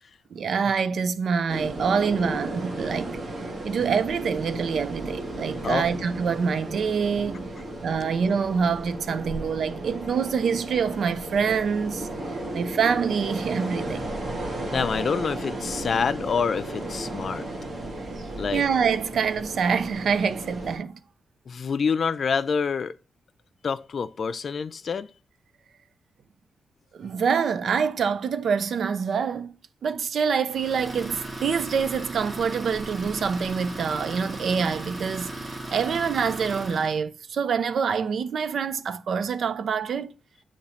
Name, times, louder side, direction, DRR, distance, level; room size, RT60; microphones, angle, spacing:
voice 1, 0.3-3.2 3.6-7.5 7.8-14.1 18.5-21.0 26.9-29.5 29.8-40.1, right 6 dB, 70° right, 0.4 m, -26 dB
sound 1, 1.5-20.8, right 1 dB, 50° right, 1.7 m, -34 dB
voice 2, 14.7-17.5 18.4-18.6 21.5-22.9 23.6-25.1, left 6 dB, 50° left, 0.4 m, -27 dB
Idling, 30.5-37.0, right 2 dB, 25° right, 1.0 m, -36 dB
8.2 x 2.9 x 4.2 m
wide cardioid pair, 125°, 0 cm